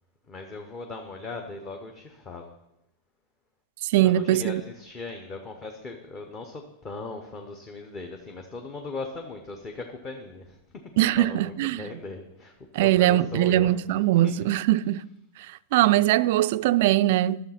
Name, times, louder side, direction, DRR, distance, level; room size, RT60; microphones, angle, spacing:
voice 1, 0.3-2.5 4.0-10.8 11.2-13.7 14.2-14.3, left 3 dB, 20° left, 0.8 m, -38 dB
voice 2, 3.8-4.6 11.0-11.8 12.7-15.0 15.5-17.4, right 14 dB, 50° right, 0.3 m, -21 dB
12.0 x 6.9 x 5.8 m
supercardioid pair, 175°, 0 cm